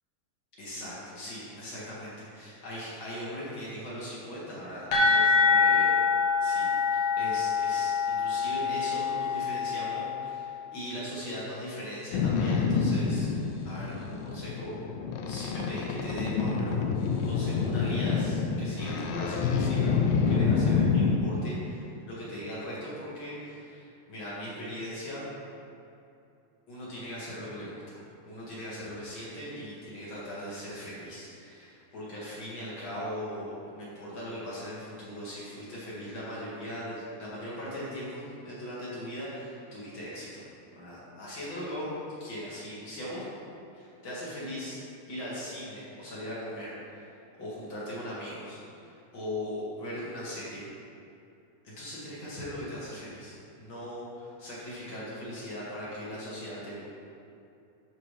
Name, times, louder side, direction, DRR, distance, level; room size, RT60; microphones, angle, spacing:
voice 1, 0.6-6.0 6.4-13.3 13.6-14.7 15.3-25.2 26.7-40.5 40.8-43.2 43.7-47.1 47.4-50.7 51.6-56.8, equal, 40° left, -8 dB, 2.3 m, -39 dB
sound 1, 4.9-10.5, left 5 dB, 55° left, 2.3 m, -25 dB
Boat Water vehicle, 12.1-21.2, left 5 dB, 80° left, 2.1 m, -27 dB
12.5 x 5.2 x 3.3 m, 2.7 s
omnidirectional pair, 4.3 m